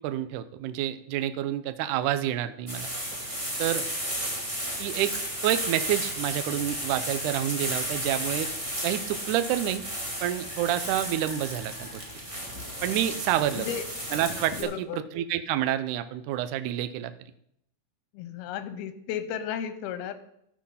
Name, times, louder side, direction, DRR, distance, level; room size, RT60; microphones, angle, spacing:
voice 1, 0.0-2.9 3.6-3.8 4.8-5.1 5.4-8.5 8.8-9.8 10.2-12.0 12.8-13.7 14.1-17.1, right 12 dB, 85° right, 10 dB, 1.8 m, -28 dB
sound 1, 2.7-14.6, equal, 15° right, 1.0 m, -33 dB
voice 2, 14.6-15.1 18.1-20.2, left 9 dB, 85° left, 11 dB, 2.8 m, -34 dB
13.5 x 6.2 x 5.7 m, 0.74 s
omnidirectional pair, 4.4 m